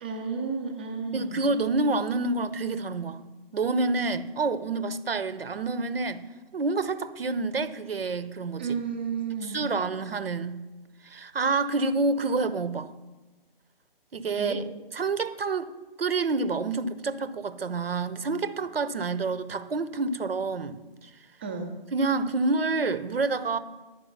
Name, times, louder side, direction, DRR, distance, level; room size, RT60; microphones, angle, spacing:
voice 1, 0.0-1.4 8.6-9.6 14.4-14.6 21.4-21.7, right 5 dB, 10° right, 0.4 m, -32 dB
voice 2, 1.1-3.2 3.5-6.2 6.5-8.8 9.3-10.6 11.0-12.9 14.1-14.6 14.9-15.7 16.0-21.1 21.9-23.6, right 3 dB, 75° right, 0.8 m, -28 dB
11.0 x 5.0 x 7.1 m
figure-of-eight pair, 145°, 29 cm